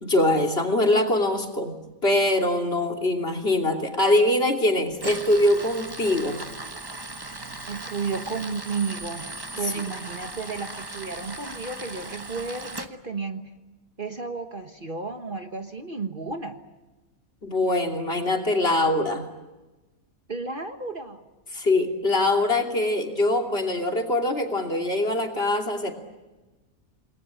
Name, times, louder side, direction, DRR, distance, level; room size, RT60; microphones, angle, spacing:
voice 1, 0.0-1.7 2.0-6.4 17.4-19.3 21.5-25.9, left 1 dB, 45° left, 2 dB, 3.2 m, -23 dB
Tools, 4.9-12.9, right 2 dB, 15° right, 1.2 m, -38 dB
voice 2, 7.7-9.3 9.6-13.5 14.0-16.6 20.3-21.2, right 4 dB, 40° right, 6 dB, 1.5 m, -32 dB
28.5 x 20.5 x 8.5 m, 1.1 s
omnidirectional pair, 1.5 m